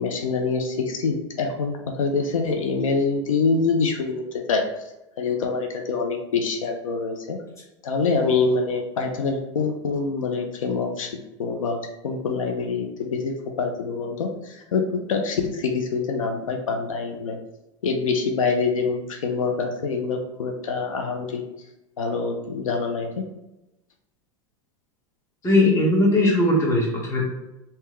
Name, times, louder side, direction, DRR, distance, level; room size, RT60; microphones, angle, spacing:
voice 1, 0.0-4.6 5.2-7.4 7.8-11.1 11.4-11.8 12.0-13.3 13.6-17.4 17.8-21.4 22.0-23.2, left 4 dB, 85° left, 3 dB, 0.5 m, -25 dB
voice 2, 25.4-27.2, left 1 dB, 15° left, -3 dB, 1.3 m, -19 dB
3.5 x 2.8 x 3.1 m, 0.95 s
hypercardioid pair, 100°, 17 cm